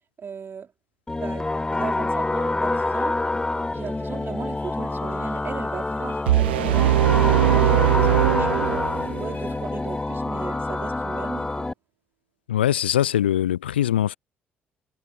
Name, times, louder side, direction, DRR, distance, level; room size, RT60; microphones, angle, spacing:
voice 1, 0.2-0.7 1.2-3.2 3.7-7.0 7.4-8.9 9.2-11.7, right 6 dB, 40° right, 4.3 m, -37 dB
sound 1, 1.1-11.7, left 2 dB, 15° left, 0.3 m, -26 dB
sound 2, 2.6-10.1, left 5 dB, 35° left, 6.9 m, -50 dB
sound 3, 6.3-9.3, right 14 dB, 80° right, 0.4 m, -20 dB
voice 2, 12.5-14.2, left 11 dB, 85° left, 0.3 m, -22 dB
figure-of-eight pair, 50°, 6 cm